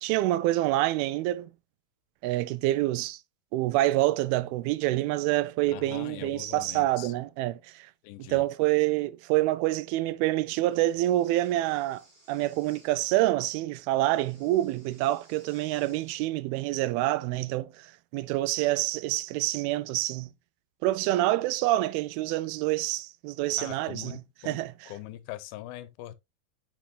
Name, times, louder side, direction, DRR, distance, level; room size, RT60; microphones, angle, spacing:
voice 1, 0.0-1.5 2.2-3.2 3.5-7.9 8.2-12.0 12.3-20.3 20.8-24.9, right 16 dB, 85° right, 2.5 m, -27 dB
voice 2, 5.7-7.1 8.0-8.4 23.6-26.2, left 14 dB, 85° left, 2.4 m, -42 dB
Breathing, 10.6-13.1 14.0-16.1, right 1 dB, 40° right, 4.7 m, -59 dB
8.7 x 5.7 x 2.4 m
omnidirectional pair, 4.3 m